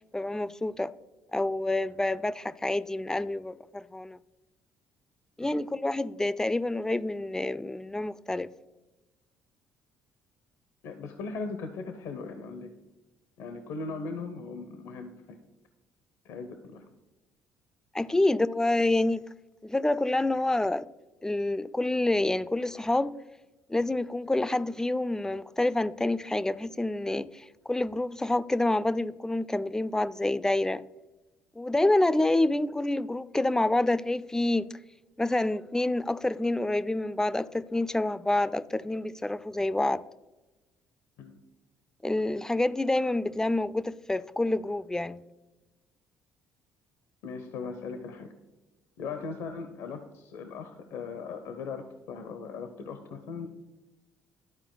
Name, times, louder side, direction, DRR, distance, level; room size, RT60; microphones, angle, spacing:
voice 1, 0.1-0.9 1.3-4.2 5.4-8.5 17.9-19.2 19.6-20.9 21.2-23.2 23.7-30.8 31.6-34.7 35.2-40.0 42.0-45.2, left 2 dB, 10° left, 0.4 m, -27 dB
voice 2, 10.8-12.7 13.4-15.4 16.2-16.8 41.2-41.4 47.2-48.3 49.0-53.5, left 4 dB, 75° left, 0.7 m, -39 dB
12.0 x 4.4 x 3.9 m
supercardioid pair, 65°, 5 cm